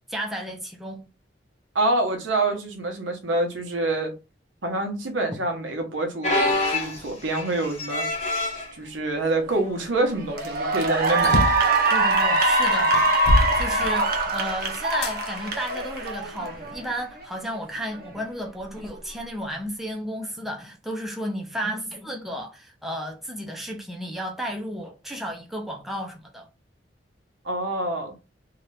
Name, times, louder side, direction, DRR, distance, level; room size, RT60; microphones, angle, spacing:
voice 1, 0.1-1.0 11.9-26.5, equal, ahead, 0.6 m, -33 dB
voice 2, 1.7-4.1 4.6-8.0 8.7-11.4 27.4-28.1, right 2 dB, 80° right, 0.9 m, -26 dB
sound 1, 6.2-8.7 9.4-9.7 10.0-10.1 11.1-11.3 12.9-13.0, left 2 dB, 35° left, 0.9 m, -27 dB
Cheering / Applause, 9.5-9.8 10.3-16.8, right 2 dB, 55° right, 0.7 m, -23 dB
sound 2, 11.2-11.7 12.4-12.5 12.9-14.4 15.0-15.2 15.9-16.9, left 1 dB, 60° left, 0.5 m, -25 dB
2.8 x 2.4 x 3.2 m
head